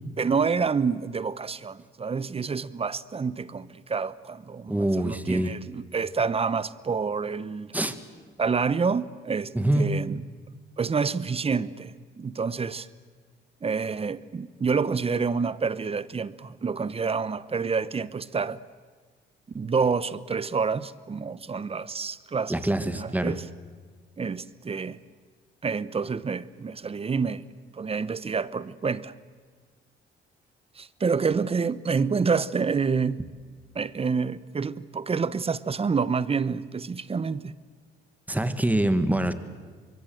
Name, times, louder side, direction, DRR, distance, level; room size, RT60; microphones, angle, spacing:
voice 1, 0.2-7.7 8.4-10.2 10.8-12.9 13.6-18.6 19.5-22.5 22.8-23.4 24.2-25.0 25.6-27.4 27.7-29.1 30.8-33.2 33.7-37.5, right 5 dB, 30° right, 0.9 m, -28 dB
voice 2, 4.7-5.5 7.7-8.0 9.5-9.9 22.5-23.4 38.3-39.3, right 1 dB, 10° right, 1.7 m, -25 dB
25.0 x 22.5 x 7.8 m
cardioid pair, 90°, 20 cm